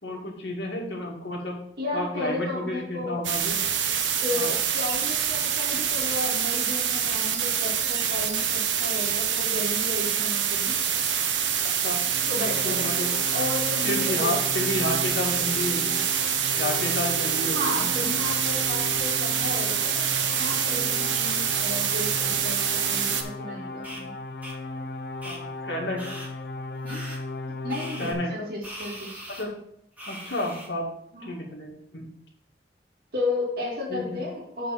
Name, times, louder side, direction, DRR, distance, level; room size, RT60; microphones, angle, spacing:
voice 1, 0.0-1.6 1.9-3.6 4.3-4.5 11.8-12.0 12.6-13.1 13.8-16.0 16.6-17.9 25.2-26.0 28.0-28.5 29.3-29.5 30.1-30.9 31.2-32.1 33.9-34.2, left 1 dB, 70° left, -1 dB, 2.2 m, -31 dB
voice 2, 1.8-3.2 4.2-10.8 12.3-12.9 13.3-14.7 17.5-22.6 22.9-24.1 26.8-27.0 27.5-29.2 31.1-31.3 33.1-34.7, left 2 dB, 55° right, -4 dB, 2.0 m, -33 dB
sound 1, 3.2-23.2, right 8 dB, 85° right, 0.9 m, -26 dB
sound 2, 11.9-28.1, left 3 dB, 55° left, 0.7 m, -37 dB
sound 3, 23.8-24.0 24.4-24.5 25.2-25.4 26.0-26.3 26.9-27.2 27.7-28.1 28.6-29.4 30.0-30.7, equal, 10° right, 1.8 m, -40 dB
8.3 x 4.2 x 5.7 m, 0.72 s
head